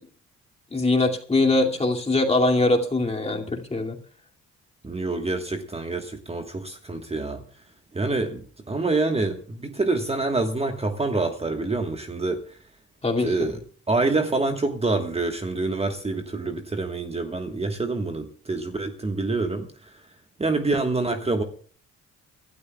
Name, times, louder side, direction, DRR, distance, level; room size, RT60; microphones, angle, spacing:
voice 1, 0.7-4.0 13.0-13.5, left 2 dB, 20° left, 2.4 m, -22 dB
voice 2, 4.8-7.4 7.9-12.4 13.2-13.6 13.9-19.7 20.4-21.4, right 3 dB, 20° right, 1.4 m, -26 dB
28.5 x 12.5 x 2.3 m
cardioid pair, 90°, 30 cm